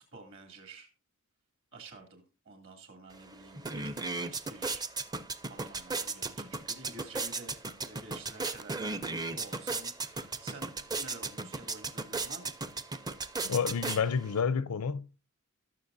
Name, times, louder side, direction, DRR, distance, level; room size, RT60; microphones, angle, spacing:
voice 1, 0.1-0.9 1.7-4.9 5.5-12.5 12.9-13.2, right 3 dB, 60° right, 2.7 m, -50 dB
sound 1, 3.1-3.2 3.5-14.4, right 3 dB, 20° right, 0.5 m, -36 dB
voice 2, 13.4-15.2, left 6 dB, 80° left, 0.6 m, -30 dB
18.5 x 6.4 x 2.6 m
head